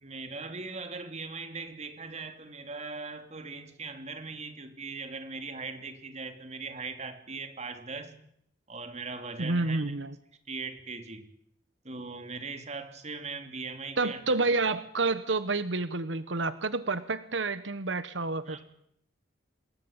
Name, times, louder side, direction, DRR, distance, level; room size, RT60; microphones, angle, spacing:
voice 1, 0.0-8.1 8.7-9.9 10.5-11.2 11.8-14.2 18.4-18.7, right 4 dB, 40° right, 7 dB, 3.2 m, -40 dB
voice 2, 9.4-10.1 14.0-18.7, right 3 dB, 90° right, 13 dB, 1.2 m, -29 dB
26.5 x 20.5 x 9.0 m, 0.71 s
head